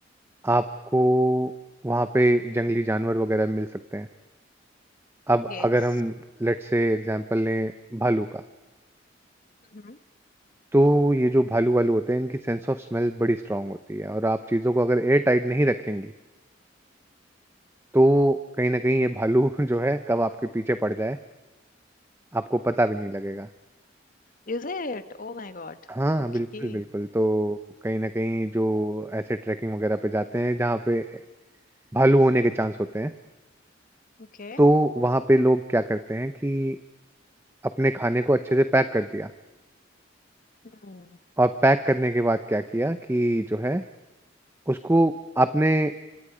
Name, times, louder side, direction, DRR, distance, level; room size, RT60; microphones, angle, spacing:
voice 1, 0.9-1.5 1.8-4.1 5.3-6.1 6.4-8.4 10.7-16.1 17.9-21.2 22.3-23.5 25.9-27.6 27.8-31.2 31.9-33.1 34.6-36.8 37.6-39.3 41.4-43.8 44.7-45.9, right 1 dB, 15° right, 10 dB, 0.7 m, -23 dB
voice 2, 24.5-25.8 26.1-26.2 26.5-26.8 34.2-34.6 40.8-41.2, left 3 dB, 45° left, 11 dB, 1.2 m, -36 dB
28.0 x 25.5 x 5.0 m, 1.1 s
head